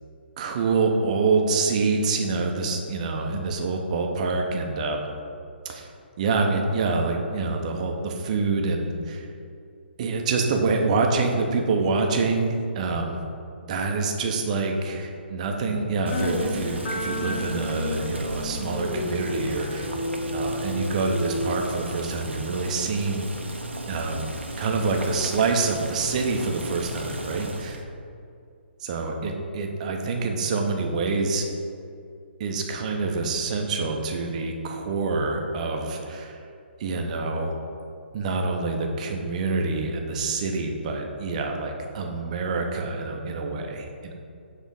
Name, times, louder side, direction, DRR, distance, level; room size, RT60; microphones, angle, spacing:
voice 1, 0.4-5.0 5.6-5.9 6.2-9.2 10.0-13.2 13.6-19.9 20.3-23.3 23.9-24.3 24.6-27.9 28.8-31.5 32.4-36.4 36.8-37.5 38.1-44.1, right 3 dB, 40° right, 3 dB, 0.8 m, -26 dB
sound 1, 16.1-21.7, left 1 dB, 45° left, 0.9 m, -31 dB
Boiling, 16.1-27.8, right 1 dB, 80° right, 0.8 m, -35 dB
7.2 x 3.6 x 5.3 m, 2.5 s
figure-of-eight pair, 130°, 6 cm